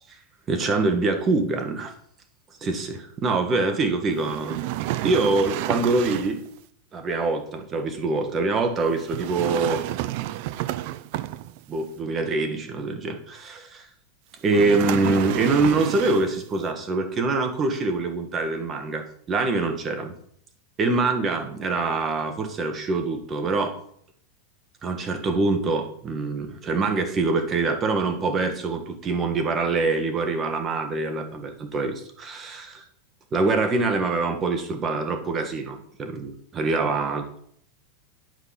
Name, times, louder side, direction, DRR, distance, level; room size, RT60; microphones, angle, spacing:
voice 1, 0.5-1.9 2.6-4.6 5.0-6.4 6.9-9.8 11.7-13.9 14.4-20.1 20.8-23.7 24.8-32.8 33.3-37.4, right 3 dB, 25° right, 6 dB, 1.6 m, -24 dB
sound 1, 4.2-6.5 9.0-11.7 14.5-16.4, right 15 dB, 60° right, 0.5 m, -30 dB
9.1 x 5.3 x 5.8 m, 0.64 s
supercardioid pair, 130°, 0 cm